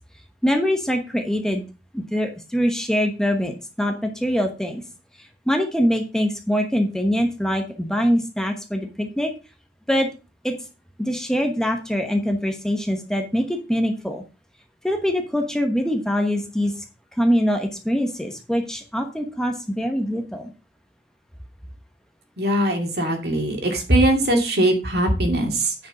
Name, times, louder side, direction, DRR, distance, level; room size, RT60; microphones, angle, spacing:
voice 1, 0.4-1.6 1.9-4.8 5.2-9.3 9.9-10.1 10.4-10.5 11.0-14.2 14.8-16.8 17.1-20.5, equal, 5° left, 4 dB, 1.0 m, -23 dB
voice 2, 22.4-25.7, right 1 dB, 60° right, 3 dB, 2.3 m, -21 dB
9.3 x 5.2 x 5.3 m, 0.31 s
head